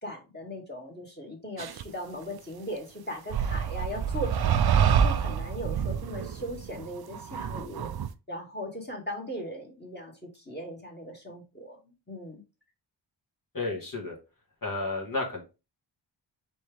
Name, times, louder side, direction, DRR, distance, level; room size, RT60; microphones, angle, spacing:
voice 1, 0.0-7.9 8.3-12.4, equal, 20° left, 1 dB, 1.9 m, -39 dB
sound 1, 1.6-1.8 3.3-8.1, right 8 dB, 55° right, 0.5 m, -27 dB
voice 2, 13.5-14.2 14.6-15.4, left 3 dB, 45° left, 1 dB, 1.6 m, -32 dB
4.2 x 3.6 x 3.3 m, 0.29 s
wide cardioid pair, 70°, 47 cm